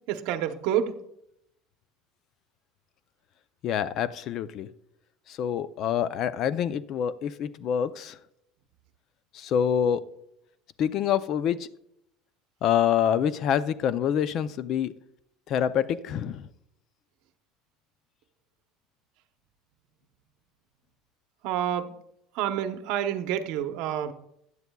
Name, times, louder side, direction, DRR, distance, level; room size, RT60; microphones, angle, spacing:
voice 1, 0.1-0.9 21.4-21.9 22.4-24.1, right 10 dB, 65° right, 9 dB, 0.8 m, -28 dB
voice 2, 3.6-4.7 5.3-8.2 9.3-10.0 10.8-11.7 12.6-14.9 15.5-16.5, left 9 dB, 45° left, 15 dB, 0.5 m, -26 dB
15.5 x 9.6 x 2.3 m, 0.78 s
cardioid pair, 150°, 0 cm